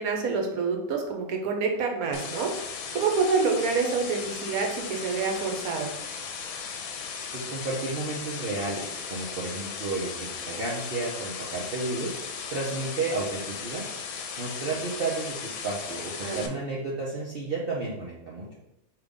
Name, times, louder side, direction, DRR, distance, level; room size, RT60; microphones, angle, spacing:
voice 1, 0.0-5.9 16.2-16.5, right 4 dB, 80° right, 2 dB, 1.3 m, -27 dB
sound 1, 2.1-16.5, left 6 dB, 80° left, 1.0 m, -37 dB
voice 2, 7.3-12.1 12.5-13.8 14.4-18.5, right 3 dB, 50° right, -5 dB, 0.8 m, -32 dB
5.1 x 2.9 x 3.5 m, 0.89 s
omnidirectional pair, 1.5 m